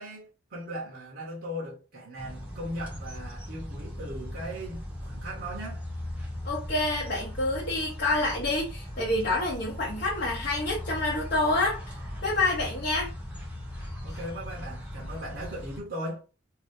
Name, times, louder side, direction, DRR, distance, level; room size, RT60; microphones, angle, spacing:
voice 1, 0.0-5.8 14.0-16.2, equal, 50° right, 0.8 m, -38 dB
sound 1, 2.2-15.8, left 1 dB, 5° right, 0.8 m, -39 dB
voice 2, 6.4-11.8 12.2-13.1, left 2 dB, 50° left, 0.8 m, -27 dB
2.6 x 2.4 x 3.5 m
head